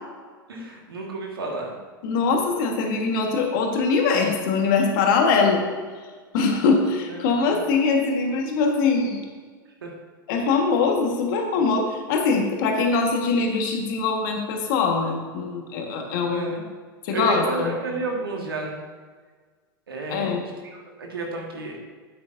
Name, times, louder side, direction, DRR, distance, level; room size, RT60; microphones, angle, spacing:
voice 1, 0.5-1.7 7.1-7.2 7.5-7.6 9.8-9.9 16.3-16.6 17.1-18.8 19.9-21.8, right 3 dB, 85° right, 0 dB, 1.6 m, -31 dB
voice 2, 2.0-5.6 6.3-9.2 10.3-16.5 17.0-17.7 20.1-20.4, left 4 dB, 60° left, 3 dB, 1.4 m, -22 dB
8.6 x 8.4 x 2.6 m, 1.5 s
hypercardioid pair, 95°, 12 cm